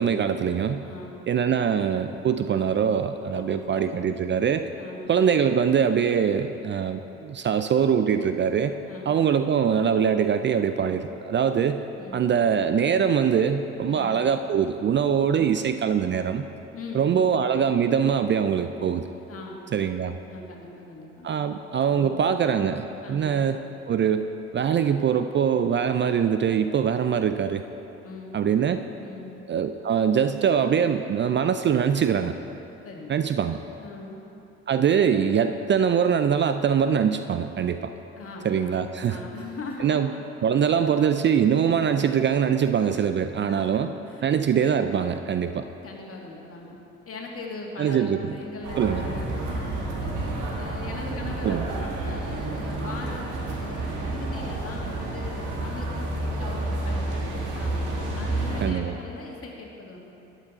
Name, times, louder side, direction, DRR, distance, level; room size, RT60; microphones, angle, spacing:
voice 1, 0.0-0.8 1.3-4.7 5.1-8.8 9.1-11.8 12.1-16.5 16.9-19.1 19.7-20.1 21.2-23.6 23.9-24.3 24.5-27.6 28.3-28.8 29.5-32.4 33.1-33.6 34.7-37.9 38.4-39.2 39.8-40.1 40.4-43.9 44.2-45.7 47.8-48.2 48.8-49.0 51.4-51.6 58.6-58.9, right 7 dB, 35° right, 9 dB, 0.5 m, -23 dB
voice 2, 0.8-1.3 3.3-4.0 4.8-5.2 8.9-9.2 12.0-12.3 13.9-14.2 16.7-17.4 19.3-19.6 20.3-21.5 21.9-22.2 23.0-23.4 28.0-28.4 29.0-29.4 32.8-33.2 33.8-34.2 38.2-40.2 40.7-40.8 43.5-44.2 45.8-46.8 47.0-60.0, left 3 dB, 45° left, -1 dB, 2.1 m, -40 dB
sound 1, 48.6-58.7, right 2 dB, 65° right, 2.0 m, -30 dB
11.5 x 9.1 x 4.2 m, 2.9 s
hypercardioid pair, 50°, 33 cm